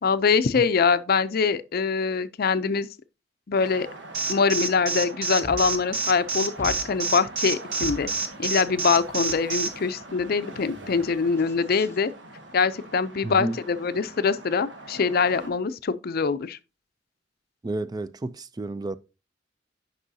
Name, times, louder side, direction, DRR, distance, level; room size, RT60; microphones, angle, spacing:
voice 1, 0.0-2.9 3.5-3.9 4.3-8.1 8.4-12.1 12.5-16.6, left 5 dB, 55° left, 0.5 m, -24 dB
sound 1, 3.6-15.5, right 2 dB, 70° right, 1.3 m, -43 dB
Alarm, 4.1-9.7, right 4 dB, 55° right, 1.2 m, -27 dB
sound 2, 5.4-6.3 6.6-7.4 7.8-9.4 9.7-10.3 10.5-12.0, equal, 15° left, 1.1 m, -41 dB
voice 2, 13.2-13.6 17.6-19.0, right 2 dB, 20° right, 0.4 m, -31 dB
10.0 x 5.5 x 2.7 m
head